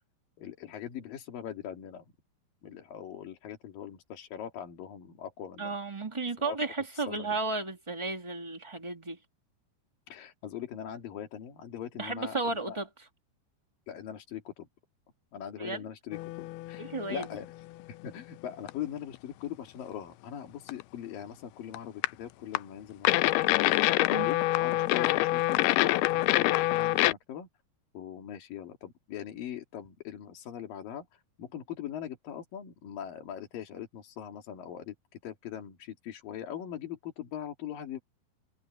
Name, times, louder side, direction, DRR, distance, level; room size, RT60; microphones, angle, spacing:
voice 1, 0.4-2.0 2.6-5.8 6.4-6.7 6.9-7.3 10.1-12.8 13.9-14.7 15.3-27.5 27.9-38.0, left 10 dB, 65° left, 3.9 m, -41 dB
voice 2, 5.6-9.2 12.0-12.9 15.6-15.8 16.8-17.3 24.1-24.3, right 3 dB, 15° right, 0.9 m, -33 dB
sound 1, 16.1-17.5 17.8-17.9 18.7-18.8 19.1-19.2 20.7-20.8 21.7-22.1 22.6-22.7 23.1-27.1, left 18 dB, 85° left, 2.6 m, -26 dB
omnidirectional pair, 4.5 m